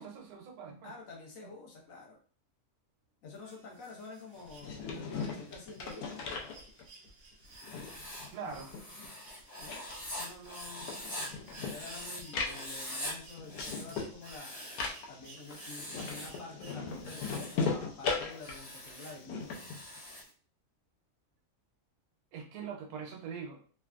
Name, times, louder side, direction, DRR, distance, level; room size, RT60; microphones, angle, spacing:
voice 1, 0.0-0.9 8.3-8.7 22.3-23.7, right 6 dB, 85° right, 3 dB, 1.2 m, -43 dB
voice 2, 0.8-2.2 3.2-6.3 9.6-9.9 10.2-11.0 11.6-14.6 15.1-19.5, left 3 dB, 65° left, -1 dB, 1.2 m, -49 dB
sound 1, 3.3-17.3 18.7-18.8, right 4 dB, 65° right, 0.8 m, -57 dB
sound 2, 4.4-7.1 7.4-9.3 9.6-20.2, left 4 dB, 85° left, 1.1 m, -39 dB
Writing, 7.5-12.2 12.4-13.1 13.4-15.0 15.4-16.4 16.9-17.6 18.3-20.3, left 1 dB, 15° left, 0.8 m, -44 dB
3.3 x 2.2 x 2.3 m, 0.42 s
omnidirectional pair, 1.6 m